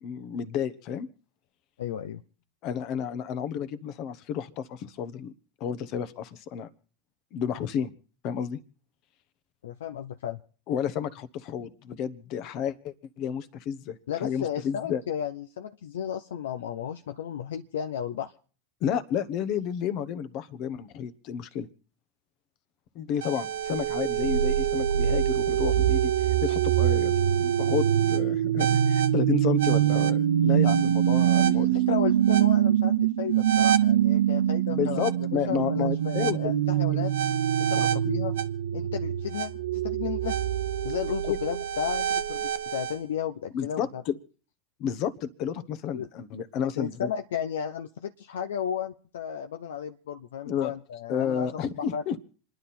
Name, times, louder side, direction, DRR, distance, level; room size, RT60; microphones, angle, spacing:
voice 1, 0.0-1.1 2.6-5.3 5.6-6.7 7.3-7.9 8.2-8.6 10.7-15.0 18.8-21.7 22.9-31.7 34.7-36.5 36.9-37.0 37.7-37.9 41.2-41.4 43.5-44.1 44.8-47.1 50.5-50.7 51.1-52.2, left 8 dB, 50° left, 13 dB, 1.1 m, -31 dB
voice 2, 1.8-2.2 9.6-10.4 14.1-18.3 31.3-35.0 35.3-37.1 37.6-38.3 38.7-40.4 40.8-44.0 45.9-46.1 46.8-52.2, left 9 dB, 75° left, 8 dB, 0.6 m, -34 dB
sound 1, 23.2-43.0, right 10 dB, 75° right, 0.7 m, -24 dB
27.5 x 10.5 x 4.3 m, 0.42 s
hypercardioid pair, 90°, 0 cm